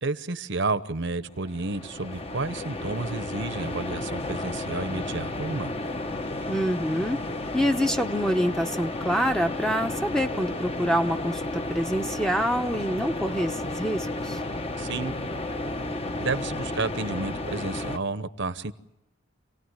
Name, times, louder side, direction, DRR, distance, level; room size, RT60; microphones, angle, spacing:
voice 1, 0.0-5.8 14.8-15.1 16.2-18.7, right 3 dB, 55° right, 12 dB, 1.0 m, -31 dB
sound 1, 1.3-18.0, left 2 dB, 25° left, 1.0 m, -32 dB
voice 2, 6.5-7.2 7.5-14.4, equal, 5° left, 6 dB, 0.8 m, -26 dB
27.5 x 18.5 x 9.6 m, 0.91 s
head